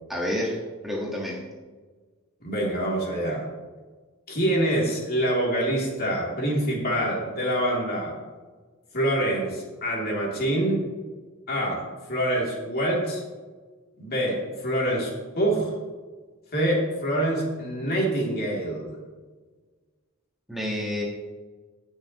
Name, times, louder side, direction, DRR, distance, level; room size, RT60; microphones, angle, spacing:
voice 1, 0.1-1.5 20.5-21.0, left 1 dB, ahead, -4 dB, 1.5 m, -29 dB
voice 2, 2.4-3.4 4.3-8.1 8.9-10.9 11.5-11.8 12.1-13.2 14.0-15.1 15.4-15.7 16.5-18.9, right 1 dB, 45° left, -3 dB, 2.9 m, -25 dB
18.5 x 6.4 x 3.0 m, 1.4 s
head